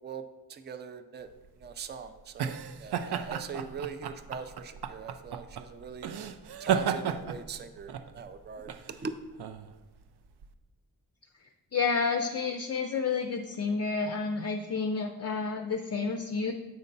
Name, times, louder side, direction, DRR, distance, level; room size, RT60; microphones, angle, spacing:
voice 1, 0.5-1.3 1.6-6.1 6.6-9.1, right 5 dB, 30° right, 10 dB, 0.4 m, -41 dB
sound 1, 1.3-10.5, right 8 dB, 85° right, 0.5 m, -34 dB
voice 2, 11.7-16.5, left 4 dB, 40° left, 5 dB, 0.4 m, -30 dB
7.9 x 5.4 x 3.9 m, 1.2 s
wide cardioid pair, 170°, 38 cm